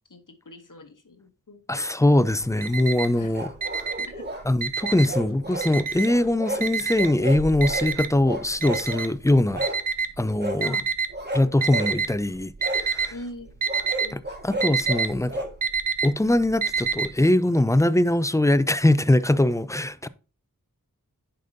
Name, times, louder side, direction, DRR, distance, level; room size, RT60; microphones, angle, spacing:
voice 1, 0.1-1.9 3.2-3.3 4.0-4.3 10.6-10.8 13.1-13.5 14.0-14.4, left 1 dB, 60° left, 1.1 m, -42 dB
voice 2, 1.7-3.5 4.5-9.7 10.2-10.8 11.3-13.1 14.1-15.5 16.0-20.1, left 1 dB, 10° left, 0.4 m, -22 dB
Alarm, 2.3-3.2 3.6-5.2 5.6-6.3 6.6-11.1 11.6-12.2 12.5-13.1 13.4-17.1, right 5 dB, 65° right, 0.7 m, -27 dB
sound 1, 3.3-4.4 4.8-5.7 6.1-6.7 7.0-7.9 8.2-9.1 9.5-9.8 10.4-10.6 11.1-12.0 12.6-12.8 13.7-15.5, right 1 dB, 30° right, 1.8 m, -32 dB
10.0 x 5.1 x 2.7 m
wide cardioid pair, 45°, 35 cm